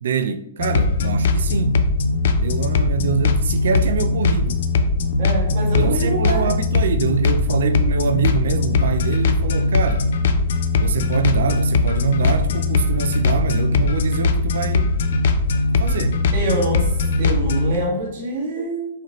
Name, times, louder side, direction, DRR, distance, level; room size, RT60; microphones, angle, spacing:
voice 1, 0.0-1.8 2.4-4.6 5.8-10.1 10.8-14.9 15.8-16.2, right 5 dB, 75° right, 0.3 m, -24 dB
sound 1, 0.6-17.8, left 3 dB, 70° left, 0.4 m, -20 dB
voice 2, 5.2-6.5 16.3-16.9 17.2-18.9, right 1 dB, 60° right, 1.6 m, -25 dB
4.9 x 2.9 x 3.0 m
hypercardioid pair, 135°, 0 cm